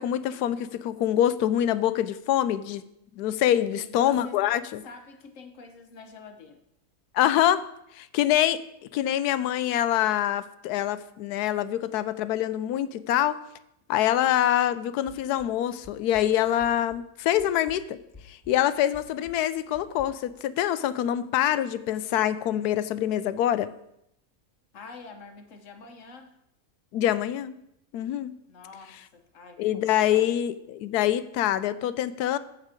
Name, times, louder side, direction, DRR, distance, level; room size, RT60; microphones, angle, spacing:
voice 1, 0.0-2.8 3.2-4.8 7.1-7.6 8.0-8.6 8.9-13.4 13.9-18.0 18.3-23.7 26.9-27.6 27.9-28.3 29.6-32.4, left 11 dB, 85° left, 14 dB, 1.1 m, -25 dB
voice 2, 3.7-4.4 4.8-6.6 24.7-26.3 28.5-30.3, left 4 dB, 55° left, 6 dB, 1.3 m, -46 dB
sound 1, 15.1-17.1 17.4-20.1, left 4 dB, 15° left, 1.9 m, -51 dB
14.0 x 4.7 x 5.0 m, 0.79 s
omnidirectional pair, 1.6 m